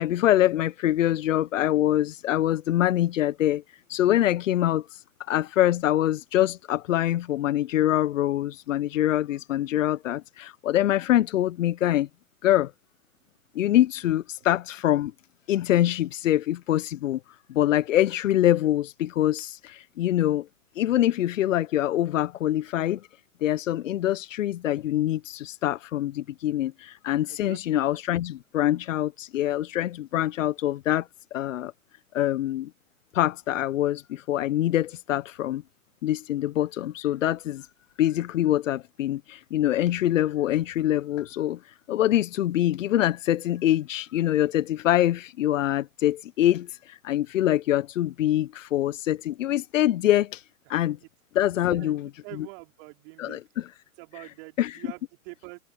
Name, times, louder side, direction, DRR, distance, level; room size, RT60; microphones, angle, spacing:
voice 1, 0.0-3.6 3.9-12.1 12.4-12.7 13.5-15.1 15.5-17.2 17.5-20.5 20.7-23.0 23.4-31.7 32.1-32.7 33.1-35.6 36.0-37.7 38.0-51.0 51.3-52.1 52.4-52.5 53.2-53.7 54.6-54.8, left 13 dB, 55° left, 1.0 m, -24 dB
voice 2, 27.3-27.8 51.7-53.4 54.0-55.6, right 32 dB, 40° right, 4.9 m, -45 dB
hypercardioid pair, 120°, 45 cm